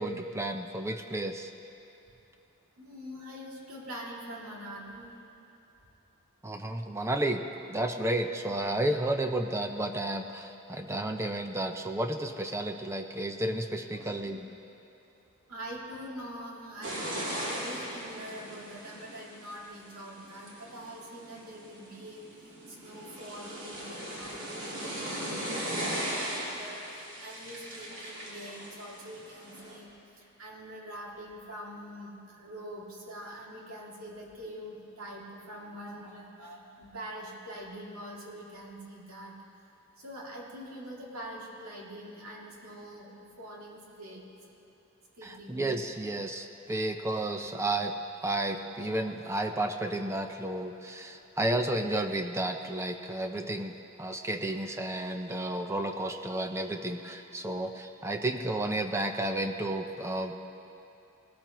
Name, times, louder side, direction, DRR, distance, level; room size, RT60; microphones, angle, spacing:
voice 1, 0.0-1.5 6.4-7.4 7.7-14.4 45.2-47.9 48.2-60.3, right 1 dB, 15° right, 5 dB, 0.5 m, -32 dB
voice 2, 2.8-5.1 13.9-14.4 15.5-22.2 22.7-29.9 30.2-39.3 40.0-43.1 43.4-44.2 45.2-45.6 47.3-47.5, equal, 80° right, -4 dB, 2.4 m, -44 dB
sound 1, 16.8-29.8, right 1 dB, 60° right, 3.1 m, -38 dB
19.5 x 13.5 x 3.0 m, 3.0 s
head